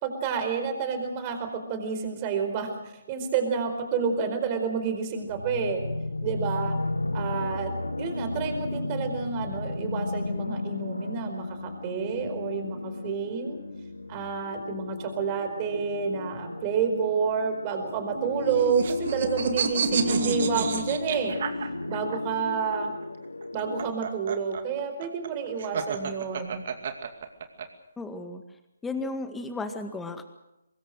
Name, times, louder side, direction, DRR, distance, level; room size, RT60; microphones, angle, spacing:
voice 1, 0.0-5.8 6.2-6.8 7.1-13.6 14.1-21.4 21.9-22.9 23.5-26.6, right 6 dB, 25° right, 7 dB, 4.5 m, -29 dB
sound 1, 5.2-23.9, left 2 dB, 85° left, 1.3 m, -34 dB
sound 2, 18.1-22.2 23.4-27.7, right 6 dB, 50° right, 2.4 m, -30 dB
voice 2, 28.0-28.4 28.8-30.2, left 3 dB, 5° left, 7 dB, 2.0 m, -34 dB
24.5 x 21.0 x 6.6 m, 0.90 s
figure-of-eight pair, 140°, 0 cm